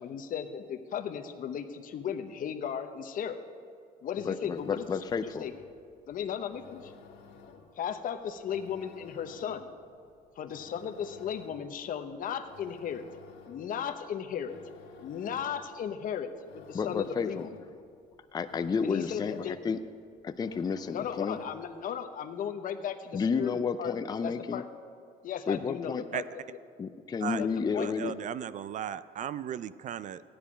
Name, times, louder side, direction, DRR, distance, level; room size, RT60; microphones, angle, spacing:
voice 1, 0.0-3.4 4.0-4.9 5.2-5.5 6.1-6.9 7.8-9.7 10.4-13.1 13.5-14.6 15.0-17.5 18.8-19.5 20.9-23.9 24.2-24.6 25.2-26.2 27.4-27.5 27.7-27.9, left 8 dB, 55° left, 7 dB, 0.9 m, -36 dB
voice 2, 4.2-5.5 16.7-17.5 18.3-19.8 20.2-21.4 23.1-24.6 25.5-26.0 26.8-28.1, left 5 dB, 25° left, 8 dB, 0.4 m, -31 dB
sound 1, 4.4-21.8, left 6 dB, 75° left, 1.4 m, -54 dB
voice 3, 27.8-30.2, right 9 dB, 45° right, 16 dB, 0.4 m, -36 dB
14.0 x 10.5 x 5.0 m, 2.3 s
cardioid pair, 110°, 17 cm